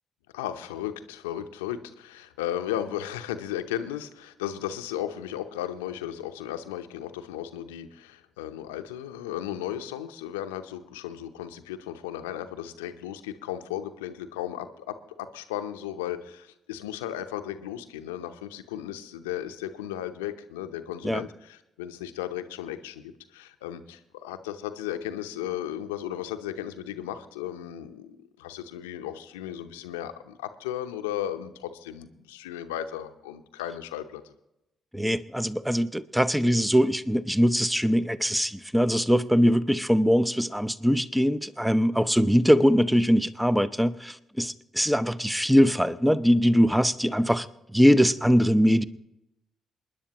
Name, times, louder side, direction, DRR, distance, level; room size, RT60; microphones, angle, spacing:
voice 1, 0.3-34.3, left 11 dB, 80° left, 0.7 m, -35 dB
voice 2, 34.9-48.8, equal, 5° right, 0.7 m, -22 dB
28.0 x 10.0 x 3.0 m
hypercardioid pair, 45°, 0 cm